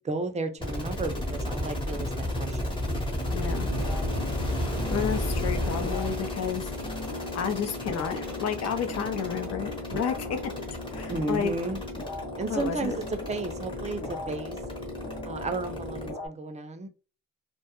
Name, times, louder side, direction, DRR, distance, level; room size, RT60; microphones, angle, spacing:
voice 1, 0.0-2.7 11.1-11.8 12.4-14.6 15.2-16.9, right 3 dB, 25° right, 7 dB, 0.4 m, -33 dB
sound 1, 0.6-16.1, left 1 dB, 15° left, 0.9 m, -33 dB
voice 2, 3.3-3.7 4.9-6.7 7.3-10.4 10.9-11.5 12.5-12.9, left 7 dB, 55° left, 8 dB, 0.6 m, -31 dB
sound 2, 3.6-16.3, left 2 dB, 85° left, 0.9 m, -38 dB
2.2 x 2.1 x 2.9 m, 0.34 s
cardioid pair, 90°, 30 cm